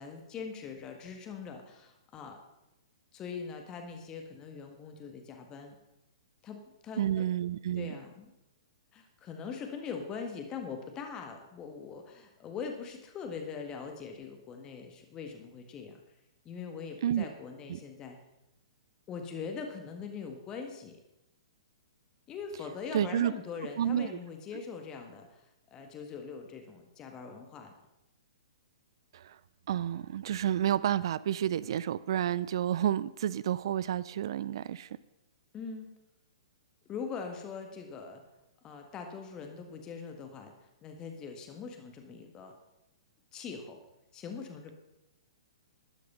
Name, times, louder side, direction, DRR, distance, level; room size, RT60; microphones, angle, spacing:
voice 1, 0.0-2.4 3.1-5.8 6.4-7.3 7.7-8.3 8.9-16.0 16.4-18.2 19.1-21.0 22.3-25.4 25.7-27.7 35.5-35.9 36.9-38.2 38.6-40.5 40.8-42.5 43.3-43.8 44.1-44.7, left 5 dB, 25° left, 4 dB, 1.7 m, -42 dB
voice 2, 7.0-7.9 17.0-17.3 17.7-17.8 22.9-23.3 23.8-24.1 29.1-29.4 29.7-35.0, right 10 dB, 55° right, 18 dB, 0.4 m, -30 dB
13.0 x 10.5 x 5.5 m, 0.92 s
figure-of-eight pair, 120°, 3 cm